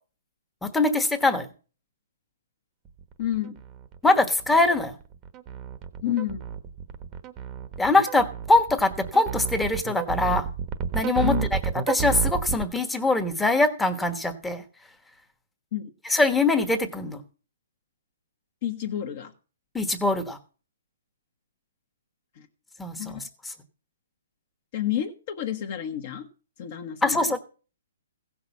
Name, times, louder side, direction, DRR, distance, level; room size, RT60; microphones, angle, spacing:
voice 1, 0.6-1.5 4.0-4.9 7.8-10.4 10.9-11.6 11.9-14.6 16.1-17.2 19.7-20.4 22.8-23.5 27.0-27.4, left 2 dB, 5° left, 8 dB, 1.2 m, -23 dB
sound 1, 2.8-12.6, right 8 dB, 20° right, 1.1 m, -31 dB
voice 2, 3.2-3.6 6.0-6.4 11.2-11.5 15.7-15.9 18.6-19.3 22.4-22.5 23.0-23.2 24.7-26.3 26.6-27.2, left 11 dB, 40° left, 4 dB, 1.3 m, -29 dB
16.0 x 6.1 x 7.1 m, 0.36 s
hypercardioid pair, 165°, 0 cm